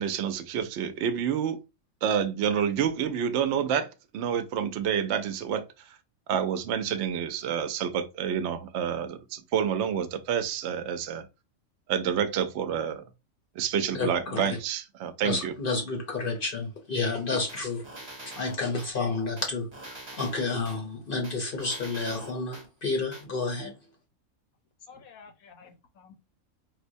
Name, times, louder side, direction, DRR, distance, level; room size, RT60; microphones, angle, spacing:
voice 1, 0.0-1.6 2.0-6.0 6.3-11.3 11.9-13.0 13.6-15.5, right 8 dB, 65° right, 0.7 m, -28 dB
voice 2, 13.9-14.6 15.2-23.8, left 3 dB, 50° left, 0.7 m, -31 dB
sound 1, 17.5-18.9 19.4-20.8 21.2-22.7 23.1-23.2, right 2 dB, 25° right, 0.7 m, -44 dB
voice 3, 24.9-26.1, left 5 dB, 85° left, 1.2 m, -51 dB
4.2 x 2.1 x 2.6 m
omnidirectional pair, 1.5 m